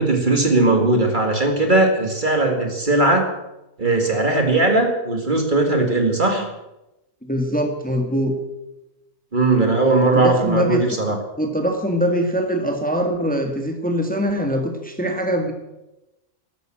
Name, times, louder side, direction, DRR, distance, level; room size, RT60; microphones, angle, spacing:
voice 1, 0.0-3.3 3.8-6.5 9.3-11.2, right 2 dB, 35° right, 4 dB, 2.1 m, -18 dB
voice 2, 7.2-8.3 10.1-10.8 11.4-15.5, equal, 5° left, 4 dB, 1.7 m, -22 dB
13.5 x 12.5 x 7.6 m, 0.97 s
omnidirectional pair, 1.5 m